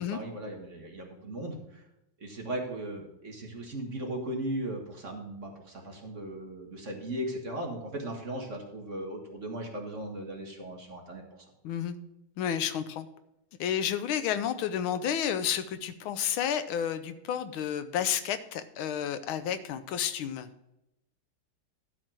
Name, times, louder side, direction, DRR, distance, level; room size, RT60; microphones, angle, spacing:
voice 1, 0.0-1.6 2.2-11.2, right 1 dB, 40° right, 1 dB, 1.7 m, -37 dB
voice 2, 11.6-12.0 12.4-13.1 13.6-20.5, left 9 dB, 80° left, 11 dB, 1.5 m, -31 dB
12.0 x 4.1 x 7.5 m, 0.87 s
omnidirectional pair, 2.3 m